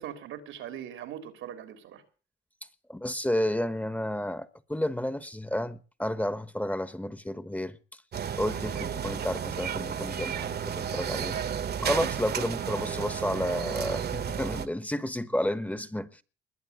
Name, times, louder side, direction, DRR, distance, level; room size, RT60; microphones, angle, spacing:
voice 1, 0.0-2.0, right 10 dB, 85° right, 3.5 m, -40 dB
voice 2, 2.9-7.8 8.4-11.4 11.8-16.2, left 1 dB, 5° left, 1.2 m, -31 dB
sound 1, 8.1-14.7, right 8 dB, 55° right, 1.5 m, -32 dB
21.0 x 8.1 x 8.1 m
cardioid pair, 90°, 20 cm